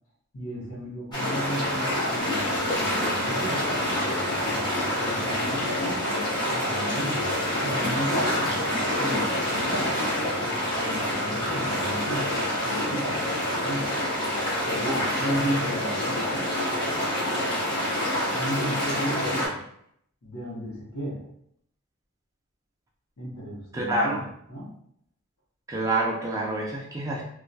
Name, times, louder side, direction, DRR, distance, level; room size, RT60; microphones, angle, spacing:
voice 1, 0.3-3.8 4.4-7.3 7.6-8.6 9.0-10.0 10.8-14.0 14.4-16.5 18.3-19.6 20.2-21.3 23.2-24.7, equal, 80° left, -5 dB, 0.8 m, -34 dB
sound 1, 1.1-19.5, left 1 dB, 20° left, 0.7 m, -27 dB
sound 2, 2.2-12.5, equal, 55° left, 1.3 m, -44 dB
voice 2, 14.9-15.3 23.7-24.2 25.7-27.2, right 2 dB, 15° right, -2 dB, 0.3 m, -27 dB
2.2 x 2.2 x 2.6 m, 0.70 s
head